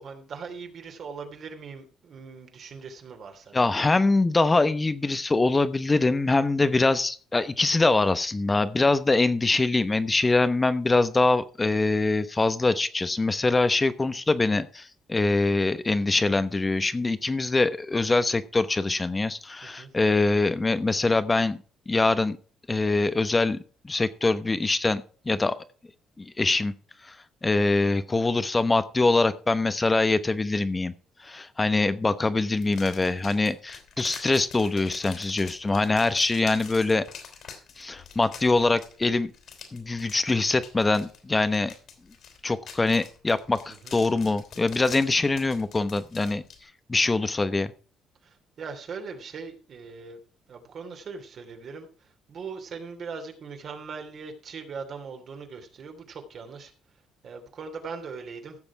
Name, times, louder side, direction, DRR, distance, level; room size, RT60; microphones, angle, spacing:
voice 1, 0.0-3.6 19.6-19.9 43.7-43.9 48.2-50.2 50.5-51.9 52.3-56.7 57.2-58.6, right 5 dB, 55° right, 5 dB, 3.1 m, -40 dB
voice 2, 3.5-21.6 21.9-22.4 22.7-23.6 23.8-25.5 26.2-26.7 27.0-27.1 27.4-30.9 31.2-37.0 37.8-39.3 39.7-41.7 42.4-46.4 46.9-47.7, left 3 dB, 20° left, 13 dB, 1.0 m, -24 dB
sound 1, 32.6-46.6, left 7 dB, 65° left, 4.0 m, -46 dB
15.5 x 7.0 x 4.7 m, 0.39 s
cardioid pair, 105°, 0 cm